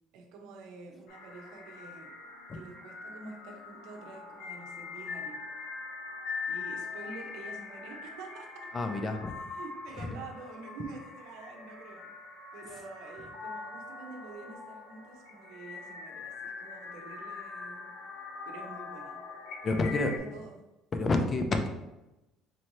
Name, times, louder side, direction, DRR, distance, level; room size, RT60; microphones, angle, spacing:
voice 1, 0.1-2.1 2.5-5.4 6.5-8.7 9.5-12.1 12.5-17.9 18.5-19.2 19.7-20.6, right 3 dB, 75° right, 2 dB, 0.7 m, -47 dB
sound 1, 1.1-20.2, left 4 dB, 85° left, 0.8 m, -42 dB
voice 2, 8.7-9.4 10.0-10.1 19.6-20.1 20.9-21.7, left 3 dB, 20° left, 5 dB, 0.4 m, -28 dB
4.3 x 2.7 x 3.0 m, 0.97 s
cardioid pair, 175°, 0 cm